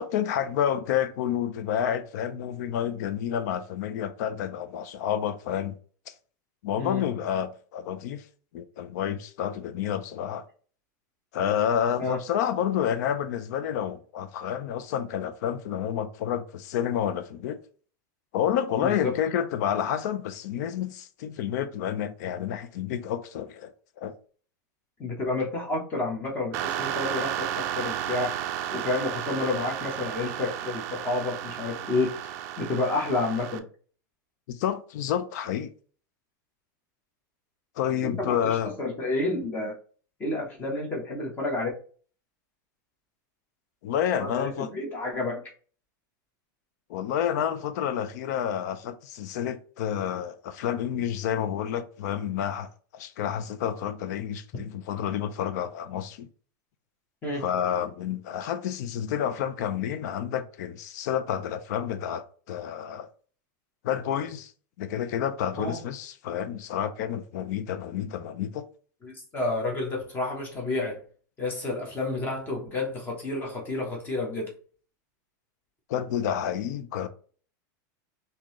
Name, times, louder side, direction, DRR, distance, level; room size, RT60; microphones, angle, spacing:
voice 1, 0.0-5.8 6.1-6.2 6.6-8.2 8.5-10.4 11.3-17.6 18.3-23.7 24.0-24.1 34.5-35.7 37.8-38.7 43.8-44.7 46.9-52.7 52.9-56.3 57.4-63.1 63.8-64.5 64.8-68.6 75.9-77.1, left 9 dB, 60° left, 0.5 m, -29 dB
voice 2, 18.8-19.1 25.0-28.3 28.7-32.1 32.6-33.6 38.0-39.7 40.2-41.7 44.2-45.4 57.2-57.4 65.5-65.9 69.0-71.0 71.4-74.5, left 2 dB, 20° left, 0.9 m, -30 dB
sound 1, 26.5-33.6, right 11 dB, 45° right, 0.4 m, -33 dB
3.7 x 2.7 x 3.0 m
supercardioid pair, 165°, 10 cm